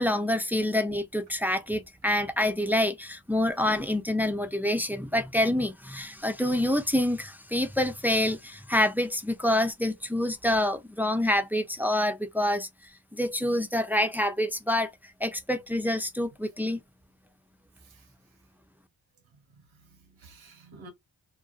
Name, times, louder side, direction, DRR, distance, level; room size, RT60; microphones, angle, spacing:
voice 1, 0.0-12.7 13.1-14.9 15.2-16.8, left 1 dB, 5° right, 0.4 m, -27 dB
voice 2, 19.6-20.9, right 2 dB, 85° right, 1.0 m, -52 dB
2.4 x 2.2 x 2.3 m
cardioid pair, 50°, 46 cm